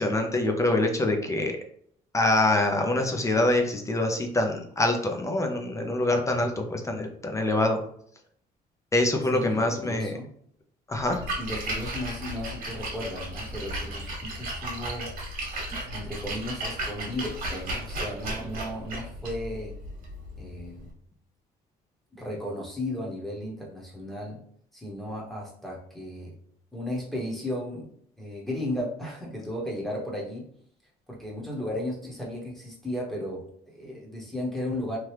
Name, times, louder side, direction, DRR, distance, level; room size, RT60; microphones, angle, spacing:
voice 1, 0.0-1.6 2.1-7.8 8.9-10.1 10.9-11.2, left 2 dB, 20° left, 3 dB, 0.5 m, -25 dB
voice 2, 9.3-10.3 11.4-15.1 15.9-19.8 20.4-20.9 22.2-24.4 24.7-26.3 26.7-27.9 28.2-30.5 31.1-35.0, left 1 dB, ahead, -4 dB, 0.9 m, -35 dB
Splash splatter, 11.0-20.9, right 1 dB, 55° right, 1.2 m, -35 dB
2.9 x 2.3 x 3.2 m, 0.64 s
cardioid pair, 110°, 17 cm